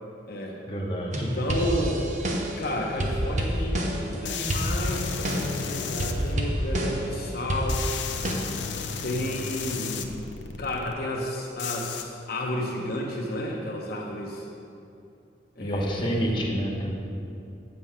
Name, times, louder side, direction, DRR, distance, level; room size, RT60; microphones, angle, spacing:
voice 1, 0.6-1.3 15.6-16.9, equal, 30° left, -3 dB, 1.2 m, -28 dB
sound 1, 1.1-2.7 3.0-4.1 4.5-5.6 6.0-7.1 7.5-8.3, equal, 45° right, 1.0 m, -28 dB
voice 2, 1.2-2.1 2.6-7.8 9.0-10.2 10.6-14.5 15.6-16.3, left 1 dB, 55° left, -1 dB, 0.9 m, -31 dB
sound 2, 4.2-6.3 7.7-10.9 11.6-12.0, left 5 dB, 90° left, 0.6 m, -33 dB
8.1 x 5.2 x 7.3 m, 2.6 s
head